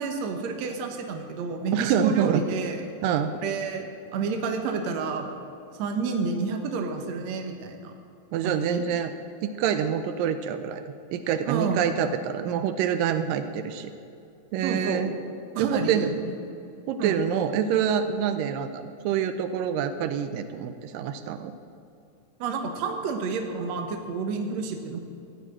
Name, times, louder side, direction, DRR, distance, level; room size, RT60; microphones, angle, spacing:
voice 1, 0.0-2.9 3.4-5.3 5.8-7.9 8.4-8.8 11.5-11.9 14.6-15.1 15.6-16.4 17.0-17.2 22.4-25.0, right 4 dB, 65° right, 5 dB, 2.1 m, -30 dB
voice 2, 1.7-2.4 3.0-3.3 8.3-9.1 9.4-13.9 14.5-15.1 15.6-16.1 16.9-21.5, right 8 dB, 85° right, 10 dB, 2.3 m, -26 dB
14.5 x 6.1 x 8.7 m, 2.5 s
omnidirectional pair, 3.9 m